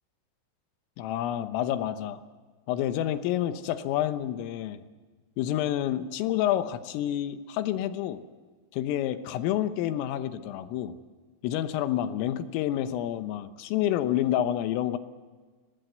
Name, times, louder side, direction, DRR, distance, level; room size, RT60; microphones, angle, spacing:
voice 1, 1.0-2.2 2.7-4.8 5.4-8.2 8.7-10.9 11.4-15.0, left 12 dB, 80° left, 10 dB, 3.7 m, -28 dB
24.5 x 19.5 x 8.0 m, 1.4 s
omnidirectional pair, 5.9 m